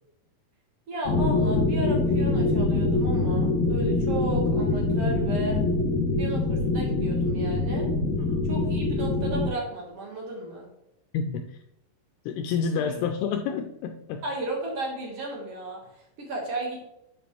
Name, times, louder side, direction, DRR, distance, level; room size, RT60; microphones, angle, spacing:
voice 1, 0.9-5.6 6.2-7.9 8.5-10.7 12.7-12.9 14.2-16.8, right 1 dB, 75° right, -1 dB, 1.4 m, -34 dB
sound 1, 1.1-9.5, left 2 dB, 60° left, 2.2 m, -24 dB
voice 2, 8.2-8.5 11.1-11.6 12.3-14.2, left 6 dB, 85° left, 6 dB, 2.4 m, -29 dB
8.3 x 7.0 x 3.1 m, 0.83 s
omnidirectional pair, 5.2 m